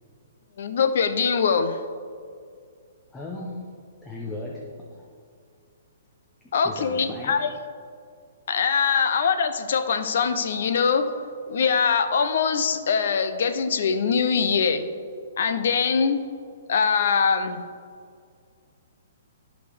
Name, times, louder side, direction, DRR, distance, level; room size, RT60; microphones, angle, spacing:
voice 1, 0.6-1.8 6.5-7.5 8.5-11.1 11.5-14.9 15.4-16.2 16.7-17.6, left 6 dB, 60° left, 9 dB, 0.7 m, -22 dB
voice 2, 3.1-3.8 4.0-5.1 6.4-7.3, left 2 dB, 10° left, -2 dB, 0.7 m, -37 dB
13.0 x 4.9 x 3.5 m, 2.3 s
hypercardioid pair, 160°, 0 cm